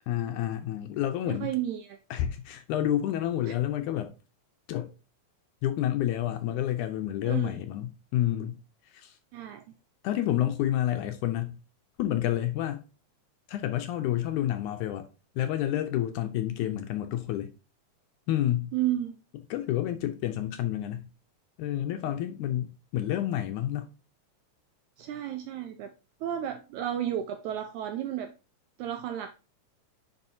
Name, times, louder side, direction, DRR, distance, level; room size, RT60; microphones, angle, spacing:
voice 1, 0.1-1.5 2.1-4.1 4.7-4.9 5.6-8.6 8.9-9.1 10.0-11.6 12.0-12.8 13.5-15.1 15.4-17.5 18.3-18.7 19.5-21.1 21.6-23.9, left 12 dB, 80° left, 1.9 m, -29 dB
voice 2, 1.3-2.0 7.2-7.6 9.3-9.6 18.7-19.2 25.0-25.9 26.2-28.3 28.8-29.3, right 11 dB, 80° right, 1.7 m, -32 dB
9.6 x 4.9 x 2.6 m
omnidirectional pair, 3.9 m